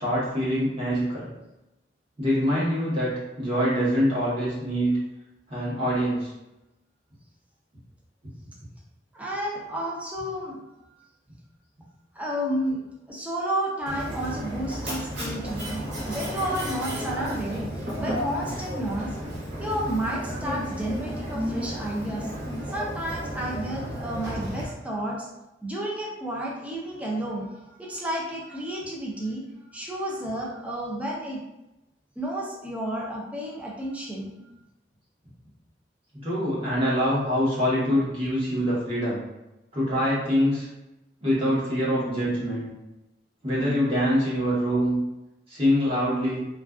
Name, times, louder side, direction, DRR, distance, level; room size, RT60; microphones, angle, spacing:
voice 1, 0.0-1.3 2.2-5.0 5.5-6.3 36.1-39.2 39.7-40.7 41.2-42.7 43.4-45.0 45.5-46.4, equal, 35° right, -8 dB, 1.0 m, -24 dB
voice 2, 9.1-10.6 12.1-12.8 13.1-19.1 19.6-22.3 22.5-25.3 25.6-29.4 29.7-31.4 32.2-34.3, right 1 dB, 10° right, -4 dB, 0.4 m, -31 dB
Mechanisms, 13.9-24.6, equal, 85° right, 0.8 m, -33 dB
2.4 x 2.2 x 2.3 m, 0.96 s
head